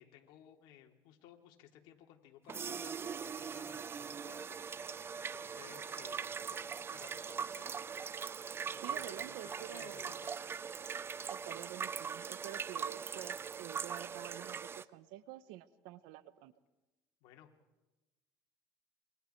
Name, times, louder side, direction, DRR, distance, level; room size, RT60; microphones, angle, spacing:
voice 1, 0.0-7.8 8.7-10.5 17.2-17.5, left 11 dB, 75° left, 3 dB, 3.3 m, -58 dB
sound 1, 2.5-14.8, right 6 dB, 30° right, 0.6 m, -41 dB
voice 2, 8.8-10.2 11.3-16.5, right 14 dB, 80° right, 15 dB, 1.1 m, -49 dB
28.0 x 24.5 x 4.7 m, 1.1 s
supercardioid pair, 105°, 8 cm